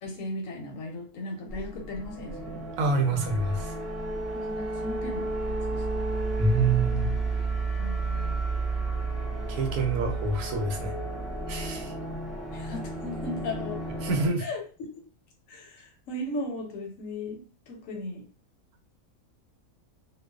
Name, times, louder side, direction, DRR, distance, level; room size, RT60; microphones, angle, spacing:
voice 1, 0.0-2.7 4.3-6.0 7.8-8.5 12.5-13.8 14.4-15.0 15.5-18.3, left 1 dB, 70° left, 2 dB, 1.0 m, -37 dB
sound 1, 1.5-14.3, right 3 dB, ahead, 0.5 m, -32 dB
voice 2, 2.8-3.8 6.4-7.1 9.5-10.9 11.5-11.9 14.0-14.5, right 3 dB, 85° right, 4 dB, 1.1 m, -26 dB
2.4 x 2.3 x 2.2 m, 0.37 s
omnidirectional pair, 1.6 m